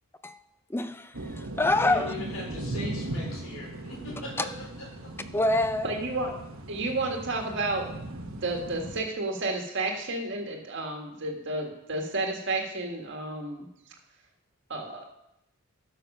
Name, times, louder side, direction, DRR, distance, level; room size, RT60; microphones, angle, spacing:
voice 1, 0.2-2.1 5.3-5.9, left 2 dB, 10° left, 0.4 m, -26 dB
sound 1, 1.1-9.0, right 1 dB, 75° right, 1.2 m, -38 dB
voice 2, 1.8-4.5 4.8-5.1, left 2 dB, 70° left, 3.9 m, -39 dB
voice 3, 5.8-6.3 6.7-7.9 8.4-13.7 14.7-15.1, right 2 dB, 55° right, 1.7 m, -31 dB
12.0 x 6.3 x 5.4 m
head